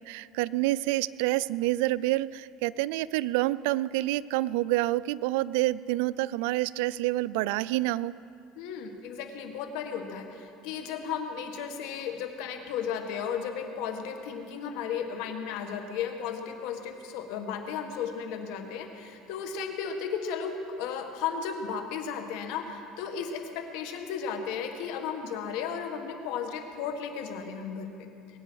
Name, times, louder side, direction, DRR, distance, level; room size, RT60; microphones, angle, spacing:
voice 1, 0.1-8.1, right 17 dB, 80° right, 19 dB, 0.3 m, -28 dB
voice 2, 8.5-28.4, left 7 dB, 75° left, 5 dB, 1.7 m, -35 dB
21.5 x 9.1 x 6.3 m, 2.6 s
supercardioid pair, 125°, 0 cm